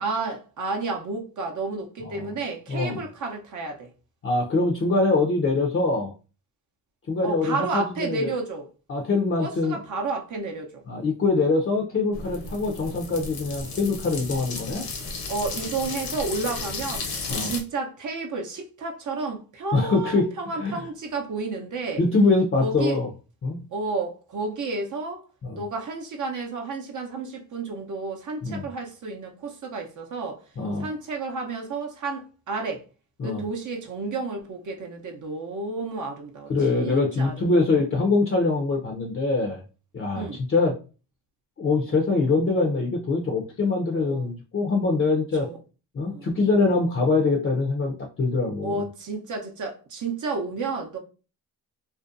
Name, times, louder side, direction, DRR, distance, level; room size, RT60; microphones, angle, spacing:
voice 1, 0.0-3.9 7.2-8.7 9.4-10.8 12.6-12.7 15.3-17.1 17.4-22.0 22.6-23.0 23.7-25.2 25.6-30.4 30.8-32.8 33.2-37.5 40.2-40.4 43.9-44.3 45.4-45.6 46.0-46.3 48.6-51.0, right 3 dB, 50° right, 0.6 m, -31 dB
voice 2, 4.2-6.1 7.1-8.3 8.9-9.8 10.9-14.8 17.3-17.5 19.7-20.3 20.6-20.8 22.0-23.1 23.4-23.6 25.4-25.6 28.4-28.7 30.6-30.9 33.2-33.4 36.5-39.6 39.9-40.7 41.6-45.5 45.9-48.8, left 3 dB, 35° left, 0.5 m, -23 dB
sound 1, 12.1-17.6, left 3 dB, 65° left, 0.8 m, -34 dB
2.5 x 2.1 x 2.5 m
cardioid pair, 70°, 39 cm